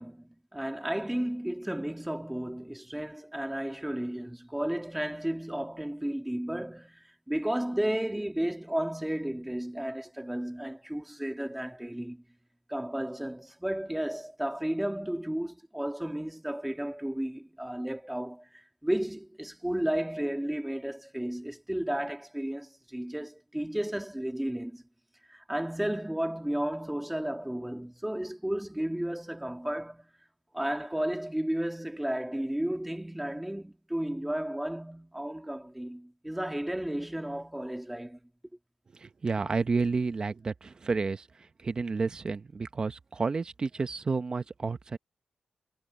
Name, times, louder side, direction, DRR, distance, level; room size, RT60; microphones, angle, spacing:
voice 1, 0.0-12.2 12.7-24.8 25.3-30.1 30.5-38.2, right 1 dB, 5° right, 2.9 m, -33 dB
voice 2, 39.0-41.3 41.6-45.0, right 4 dB, 40° right, 1.1 m, -30 dB
cardioid pair, 100°, 2 cm